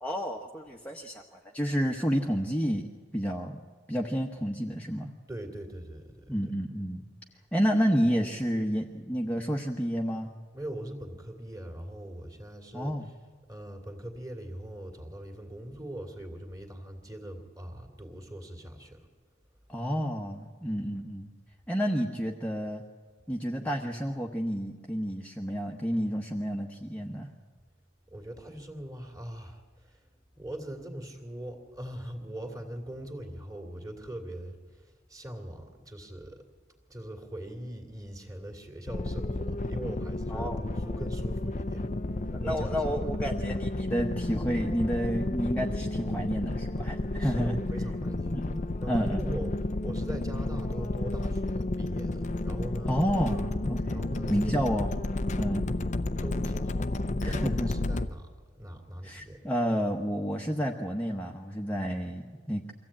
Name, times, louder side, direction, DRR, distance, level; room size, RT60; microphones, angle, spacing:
voice 1, 0.0-2.8 3.1-3.6 3.9-5.1 6.3-7.0 7.5-10.3 12.7-13.1 19.7-21.3 21.7-22.8 23.3-27.3 40.3-40.6 42.3-47.6 48.3-48.6 48.9-49.4 52.9-54.9 55.4-55.7 57.2-57.7 59.0-62.7, equal, 5° left, 0 dB, 1.1 m, -30 dB
voice 2, 5.3-6.4 10.5-13.1 13.5-19.1 28.1-30.0 30.3-36.4 36.9-41.9 42.2-43.1 47.2-48.4 48.8-52.9 53.3-53.5 53.9-54.9 56.2-57.0 57.2-59.5, right 1 dB, 20° right, 4 dB, 2.6 m, -41 dB
sound 1, 38.9-58.1, left 2 dB, 35° left, 0.6 m, -31 dB
24.0 x 16.0 x 8.8 m, 1.5 s
head